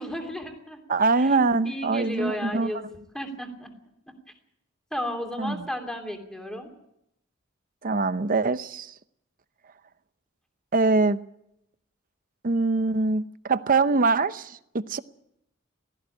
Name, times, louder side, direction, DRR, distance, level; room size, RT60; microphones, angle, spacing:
voice 1, 0.0-1.4 1.6-3.7 4.9-6.7, equal, 5° left, 3.0 m, -34 dB
voice 2, 0.9-2.7 5.4-5.6 7.8-8.9 10.7-11.2 12.4-13.2 13.5-15.0, right 3 dB, 45° right, 0.8 m, -23 dB
18.0 x 14.5 x 9.9 m
head